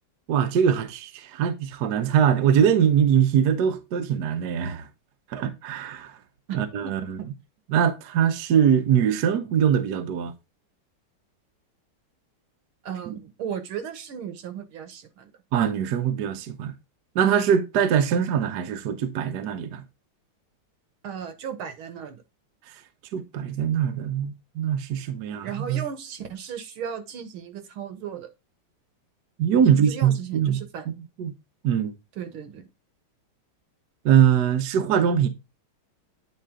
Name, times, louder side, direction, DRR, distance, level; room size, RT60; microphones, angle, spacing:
voice 1, 0.3-4.9 5.3-6.2 6.5-7.2 7.7-10.3 13.1-13.2 15.5-16.7 17.1-19.8 23.1-25.8 29.4-30.6 31.2-31.3 31.6-31.9 34.0-35.3, right 8 dB, 60° right, 1.3 m, -22 dB
voice 2, 6.5-6.9 7.2-7.3 12.8-15.3 21.0-22.2 25.4-28.3 29.6-30.9 32.2-32.7, right 8 dB, 75° right, 1.9 m, -35 dB
9.2 x 4.1 x 3.6 m
omnidirectional pair, 2.3 m